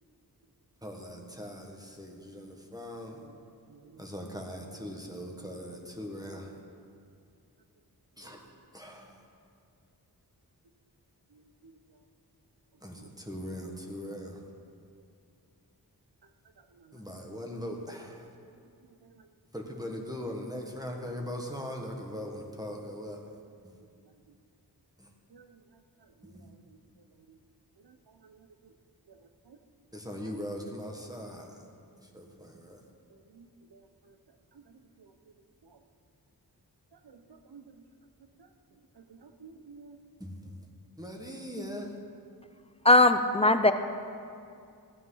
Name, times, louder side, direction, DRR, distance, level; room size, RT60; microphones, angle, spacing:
voice 1, 0.8-3.2 4.0-6.6 8.2-8.4 8.7-9.2 12.8-14.5 16.9-18.3 19.5-23.3 23.6-23.7 25.0-25.1 26.3-26.4 29.9-31.6 32.1-32.9 40.2-40.5 41.0-41.9, equal, 10° right, 1.5 m, -40 dB
voice 2, 3.7-4.1 6.4-6.6 8.2-8.3 11.6-11.7 13.0-13.1 16.8-17.0 25.3-25.6 26.2-26.3 26.7-26.8 27.3-27.4 27.8-28.0 28.2-28.5 29.1-29.2 29.5-29.6 33.3-33.8 34.1-34.2 35.0-35.1 35.6-35.8 37.0-37.8 39.0-40.0, right 5 dB, 80° right, 1.0 m, -54 dB
voice 3, 42.8-43.7, left 2 dB, 15° left, 0.6 m, -19 dB
15.5 x 9.2 x 5.7 m
wide cardioid pair, 80°, 39 cm